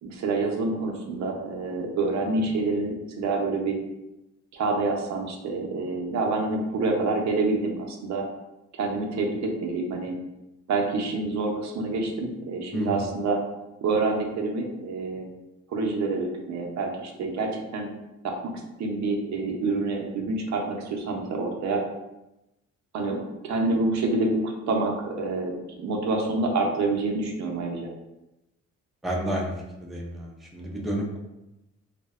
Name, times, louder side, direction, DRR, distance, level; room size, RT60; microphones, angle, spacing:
voice 1, 0.0-3.8 4.5-8.2 8.7-10.1 10.7-13.4 13.8-15.3 15.7-17.9 18.2-18.3 18.8-21.8 22.9-23.2 23.4-27.9, right 3 dB, 65° right, 1 dB, 0.6 m, -27 dB
voice 2, 12.7-13.0 29.0-29.5 29.8-31.2, equal, ahead, -2 dB, 0.4 m, -30 dB
2.5 x 2.0 x 2.3 m, 0.95 s
cardioid pair, 90°, 30 cm